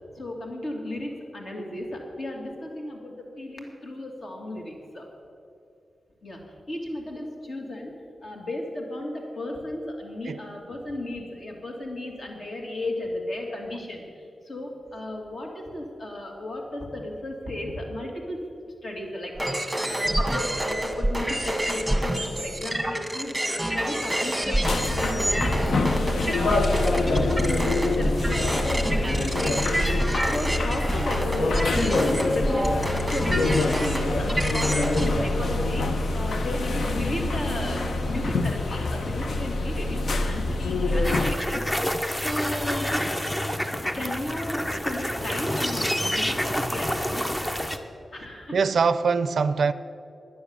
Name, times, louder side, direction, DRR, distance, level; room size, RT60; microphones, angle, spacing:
voice 1, 0.1-5.1 6.2-6.4 6.7-7.9 8.2-14.0 14.4-18.4 18.8-31.6 31.9-32.8 33.1-41.6 42.2-43.0 43.8-47.3 48.1-48.6, left 1 dB, 50° left, 0 dB, 2.4 m, -34 dB
sound 1, 19.4-35.3, right 1 dB, 5° right, 1.5 m, -27 dB
sound 2, 24.6-41.3, left 2 dB, 70° left, 0.8 m, -26 dB
sound 3, 41.0-47.8, equal, 15° left, 0.7 m, -28 dB
voice 2, 48.5-49.7, right 5 dB, 70° right, 14 dB, 0.4 m, -22 dB
10.5 x 9.8 x 7.1 m, 2.6 s
wide cardioid pair, 120°, 0 cm